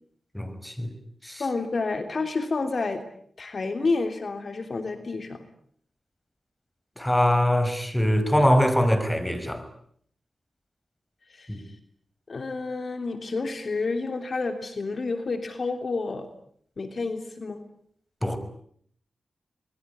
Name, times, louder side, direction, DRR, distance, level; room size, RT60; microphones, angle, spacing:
voice 1, 0.3-0.9 1.2-1.4 7.0-9.6 11.5-11.6 18.2-18.4, equal, 10° left, 11 dB, 5.8 m, -23 dB
voice 2, 1.4-3.0 3.4-5.5 11.3-11.6 12.3-16.3 16.8-17.6, left 3 dB, 55° left, 8 dB, 3.2 m, -29 dB
26.5 x 22.0 x 9.8 m, 0.65 s
cardioid pair, 60°, 0 cm